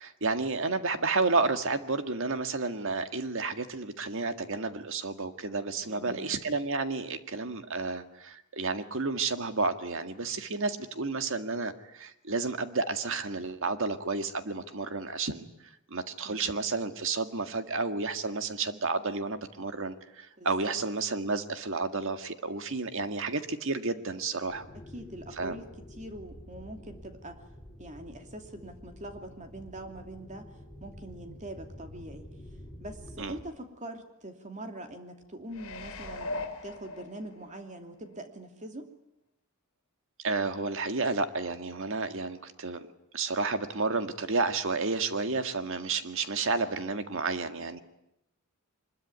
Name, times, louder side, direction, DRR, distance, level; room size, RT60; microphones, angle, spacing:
voice 1, 0.0-15.5 15.9-24.6 25.4-25.6 33.2-33.3 40.2-42.9 43.1-47.8, right 3 dB, 65° right, 8 dB, 1.8 m, -31 dB
voice 2, 5.8-6.3 16.2-16.4 20.4-20.7 24.9-25.6 26.0-27.4 27.8-30.4 30.8-32.3 32.8-36.4 36.6-38.9, right 1 dB, 35° right, 5 dB, 2.8 m, -43 dB
sound 1, 24.5-33.4, equal, 10° left, 7.9 m, -48 dB
sound 2, 35.5-37.6 38.1-38.2, left 2 dB, 65° left, 3.3 m, -39 dB
24.0 x 21.5 x 9.6 m, 0.84 s
head